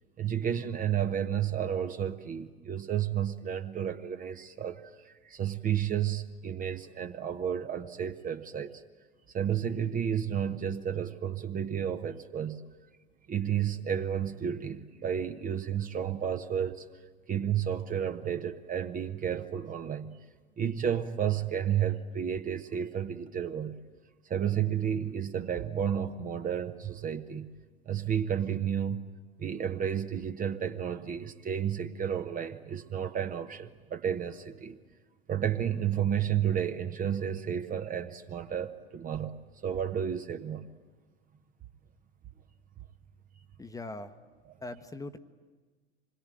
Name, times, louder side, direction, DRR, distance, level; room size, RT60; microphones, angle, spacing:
voice 1, 0.2-8.8 9.3-12.6 13.3-16.8 17.3-20.2 20.6-23.8 24.3-27.5 27.9-29.1 29.4-34.8 35.3-39.4 39.6-40.7 44.5-44.6, right 9 dB, 25° right, 8 dB, 1.1 m, -31 dB
voice 2, 43.6-44.1 44.6-45.2, left 2 dB, 10° left, 9 dB, 1.2 m, -40 dB
26.5 x 21.5 x 9.1 m, 1.4 s
figure-of-eight pair, 80°, 33 cm